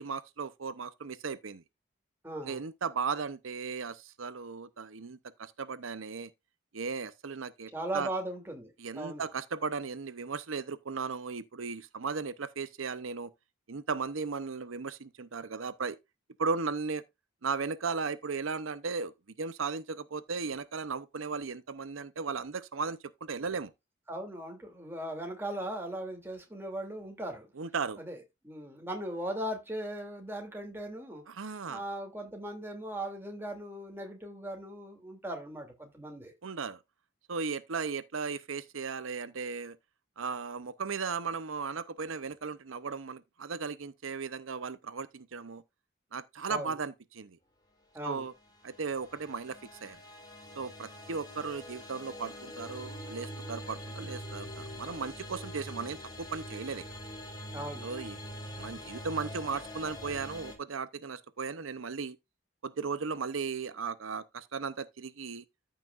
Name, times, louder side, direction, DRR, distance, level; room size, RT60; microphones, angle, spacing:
voice 1, 0.0-1.6 2.4-6.3 6.7-8.1 8.8-13.3 13.7-16.0 16.4-17.0 17.4-19.1 19.4-23.7 27.6-28.0 31.3-31.8 36.4-36.8 37.3-39.8 40.2-45.6 46.1-47.4 48.0-48.3 48.6-50.0 50.6-56.8 57.8-58.2 58.6-62.2 62.6-65.4, right 5 dB, 90° right, 0.7 m, -36 dB
voice 2, 2.2-2.6 7.7-9.3 24.1-27.5 28.0-28.2 28.4-31.2 31.7-36.3 46.5-46.7 47.9-48.3 57.5-57.9, right 1 dB, 10° right, 2.7 m, -38 dB
sound 1, 48.3-60.6, equal, 20° left, 2.9 m, -44 dB
14.0 x 5.9 x 2.5 m
head